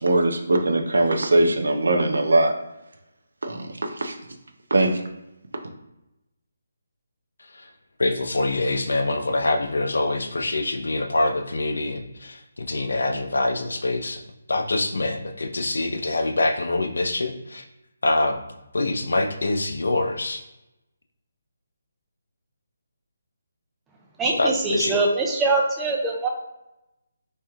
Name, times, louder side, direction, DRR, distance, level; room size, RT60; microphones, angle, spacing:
voice 1, 0.0-2.5 3.4-4.1 4.7-5.0, right 2 dB, 90° right, 4 dB, 0.7 m, -21 dB
voice 2, 8.0-12.4 12.7-14.2 14.5-17.6 18.0-18.4 18.7-20.4 24.4-25.0, left 2 dB, 85° left, 5 dB, 0.6 m, -24 dB
voice 3, 24.2-26.3, right 3 dB, 5° right, -2 dB, 0.5 m, -23 dB
3.2 x 3.0 x 3.5 m, 0.92 s
hypercardioid pair, 170°, 0 cm